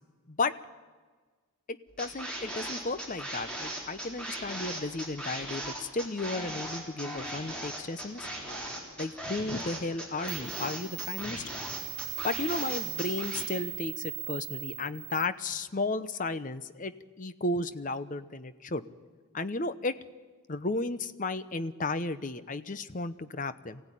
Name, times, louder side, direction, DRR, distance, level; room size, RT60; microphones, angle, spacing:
voice 1, 1.7-8.3 9.0-11.5 12.2-16.9 17.2-18.8 19.3-20.0 20.5-23.8, left 2 dB, 35° left, 13 dB, 0.8 m, -34 dB
sound 1, 2.0-13.4, right 1 dB, 5° left, 3.7 m, -38 dB
sound 2, 9.8-9.9 10.3-15.3, right 13 dB, 30° right, 0.8 m, -39 dB
23.0 x 16.0 x 10.0 m, 1.4 s
head